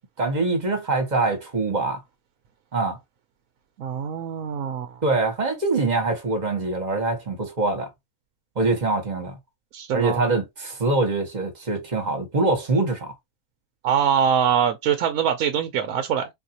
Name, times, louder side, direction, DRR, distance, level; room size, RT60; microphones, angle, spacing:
voice 1, 0.2-2.0 2.7-3.0 5.0-7.9 8.6-9.3 9.9-13.1, right 3 dB, 30° right, 1.1 m, -24 dB
voice 2, 3.8-4.9 9.7-10.3 13.8-16.3, right 8 dB, 70° right, 1.0 m, -23 dB
4.0 x 2.6 x 2.8 m
omnidirectional pair, 1.6 m